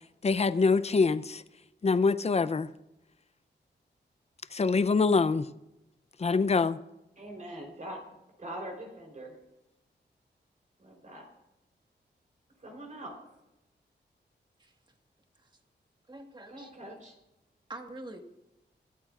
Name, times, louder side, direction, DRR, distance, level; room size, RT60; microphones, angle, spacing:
voice 1, 0.2-1.4 1.8-2.7 4.5-5.5 6.2-6.8, left 4 dB, 35° left, 0.6 m, -25 dB
voice 2, 7.2-9.4 10.8-11.3 12.6-13.2 16.5-17.2, right 1 dB, 45° right, 3.8 m, -43 dB
voice 3, 16.1-16.7 17.7-18.2, right 2 dB, 25° right, 1.6 m, -44 dB
23.5 x 13.0 x 2.5 m
wide cardioid pair, 130°, 19 cm